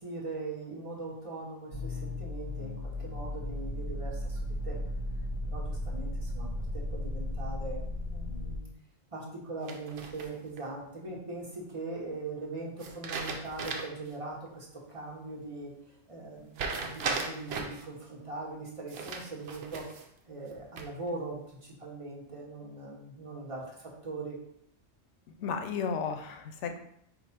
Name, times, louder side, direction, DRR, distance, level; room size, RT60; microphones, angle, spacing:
voice 1, 0.0-4.8 5.5-7.8 8.1-8.7 9.1-15.7 16.1-19.8 20.3-24.4, right 2 dB, 30° right, -3 dB, 1.1 m, -41 dB
sound 1, 1.7-8.6, left 1 dB, 30° left, 0.7 m, -35 dB
sound 2, 9.7-10.6 12.8-14.1 14.5-14.6 16.5-17.8 18.9-20.1 20.5-21.1, right 4 dB, 65° right, 0.8 m, -37 dB
voice 2, 25.4-26.8, left 6 dB, 85° left, 6 dB, 0.9 m, -33 dB
5.0 x 2.3 x 4.3 m, 0.72 s
omnidirectional pair, 1.2 m